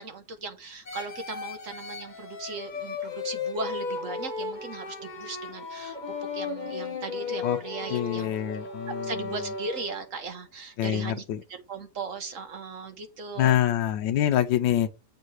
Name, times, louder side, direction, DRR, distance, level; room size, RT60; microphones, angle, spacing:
voice 1, 0.0-6.0 6.3-8.3 9.0-11.2 11.5-13.6, right 4 dB, 50° right, 1.2 m, -38 dB
sound 1, 0.9-10.2, left 4 dB, 30° left, 0.9 m, -35 dB
voice 2, 7.9-9.1 10.8-11.4 13.4-14.9, left 11 dB, 80° left, 1.3 m, -25 dB
7.3 x 4.7 x 4.7 m
omnidirectional pair, 2.0 m